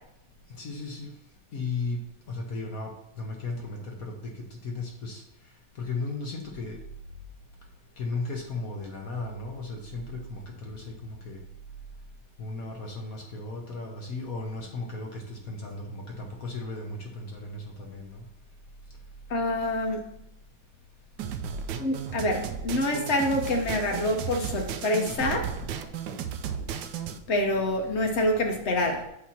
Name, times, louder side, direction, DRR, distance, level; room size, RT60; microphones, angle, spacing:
voice 1, 0.6-1.1 1.5-2.0 2.3-2.9 3.2-5.2 5.7-6.8 8.0-11.4 12.4-18.2, left 3 dB, 55° left, 0 dB, 1.1 m, -35 dB
voice 2, 19.3-20.0 21.8-25.5 27.3-29.0, left 1 dB, 85° left, 2 dB, 0.6 m, -26 dB
sound 1, 21.2-27.2, right 8 dB, 75° right, 1.1 m, -34 dB
8.3 x 2.9 x 5.8 m, 0.80 s
omnidirectional pair, 2.2 m